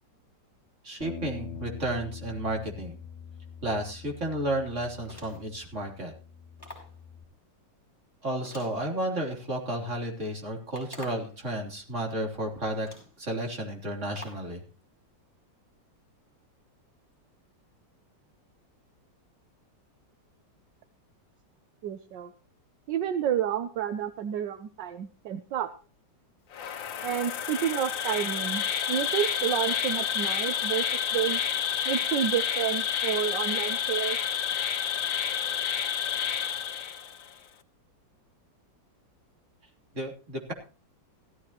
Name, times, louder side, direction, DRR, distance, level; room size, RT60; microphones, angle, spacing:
voice 1, 0.8-3.0 3.6-6.1 8.2-12.9 13.2-14.6 39.9-40.5, right 1 dB, 40° right, 1 dB, 3.7 m, -32 dB
Bass guitar, 1.0-7.2, left 6 dB, 40° left, 2.3 m, -44 dB
sound 1, 5.0-5.6 6.6-7.0 8.4-9.4 10.7-11.4 12.3-12.4 12.8-13.2 14.1-14.5, left 1 dB, 10° left, 5.8 m, -48 dB
voice 2, 21.8-22.3 22.9-25.7 27.0-30.9 31.1-31.4 31.9-34.2, right 10 dB, 75° right, 10 dB, 1.5 m, -30 dB
Insect, 26.5-37.3, left 8 dB, 85° left, 1.9 m, -29 dB
16.5 x 14.5 x 3.0 m, 0.37 s
omnidirectional pair, 2.0 m